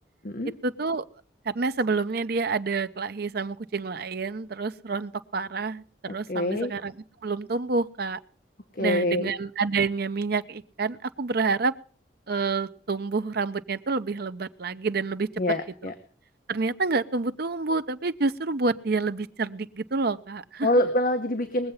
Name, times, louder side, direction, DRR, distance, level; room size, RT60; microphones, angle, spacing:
voice 1, 0.6-1.0 1.5-6.9 7.2-8.2 8.8-11.7 12.3-15.3 16.5-20.7, right 4 dB, 60° right, 12 dB, 0.7 m, -28 dB
voice 2, 6.3-6.7 8.8-9.3 15.4-15.9 20.6-21.7, left 1 dB, 50° left, 7 dB, 1.1 m, -25 dB
21.0 x 7.8 x 5.6 m, 0.43 s
head